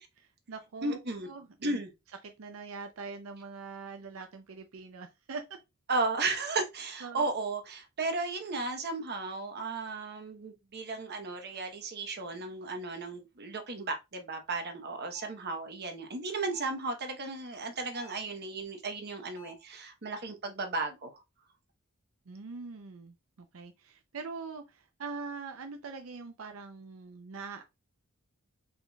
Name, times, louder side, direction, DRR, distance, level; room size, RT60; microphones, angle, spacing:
voice 1, 0.0-1.0 1.3-1.8 2.2-5.4 7.0-7.3 22.3-27.6, right 4 dB, 70° right, 0.6 m, -43 dB
voice 2, 0.8-1.3 1.6-1.9 5.9-21.2, right 3 dB, 50° right, 1.0 m, -35 dB
sound 1, 15.1-15.5 16.5-16.9 17.9-18.3 19.4-19.7, left 1 dB, 35° left, 0.8 m, -54 dB
5.1 x 4.0 x 2.3 m
head